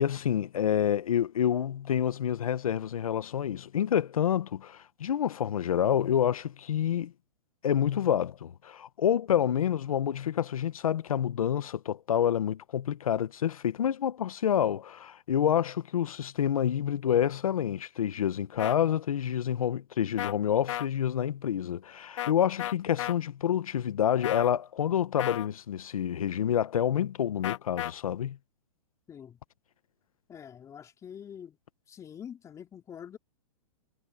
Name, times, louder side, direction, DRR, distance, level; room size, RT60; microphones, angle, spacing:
voice 1, 0.0-7.1 7.6-28.4, left 9 dB, 85° left, 1.4 m, -28 dB
sound 1, 18.6-18.8 20.2-20.3 20.7-20.9 22.2-22.3 22.6-23.1 24.2-24.5 25.2-25.5 27.4-27.9, left 13 dB, 60° left, 1.0 m, -33 dB
voice 2, 29.1-29.4 30.3-31.6 31.9-33.2, left 8 dB, 15° left, 4.1 m, -45 dB
hypercardioid pair, 145°, 18 cm